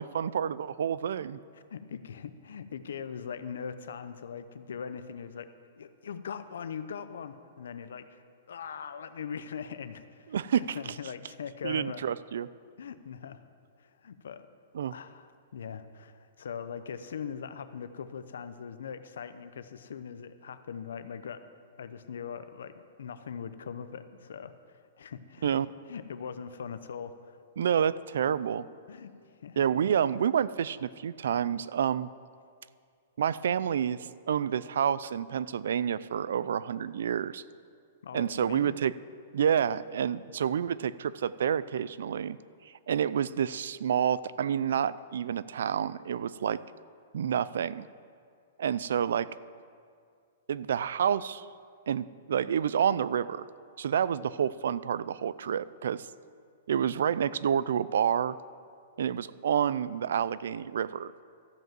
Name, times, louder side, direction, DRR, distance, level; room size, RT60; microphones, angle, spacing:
voice 1, 0.0-1.4 10.3-10.8 11.6-12.5 14.7-14.9 25.4-25.7 27.6-28.6 29.6-32.1 33.2-34.0 34.3-37.4 38.1-38.9 39.3-42.4 42.9-46.6 47.1-47.9 48.6-49.3 50.5-51.5 51.9-53.5 53.8-56.1 56.7-58.4 59.0-61.1, right 8 dB, 65° right, 18 dB, 0.3 m, -29 dB
voice 2, 1.7-5.5 5.8-8.2 8.5-12.0 12.8-13.4 13.8-14.5 14.9-21.5 21.8-24.5 25.0-25.5 25.9-27.7 28.9-29.6 38.0-38.7, left 7 dB, 80° left, 11 dB, 0.7 m, -41 dB
13.5 x 5.4 x 7.4 m, 2.2 s
hypercardioid pair, 175°, 0 cm